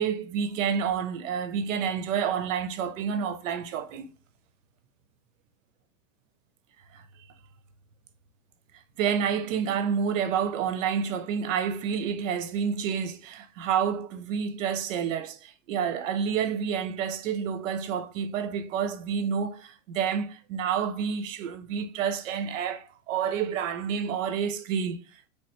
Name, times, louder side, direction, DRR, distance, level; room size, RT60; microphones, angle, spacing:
voice 1, 0.0-4.1 6.9-7.0 8.7-25.3, right 7 dB, 80° right, 0.6 m, -29 dB
3.1 x 2.1 x 3.0 m
supercardioid pair, 175°, 38 cm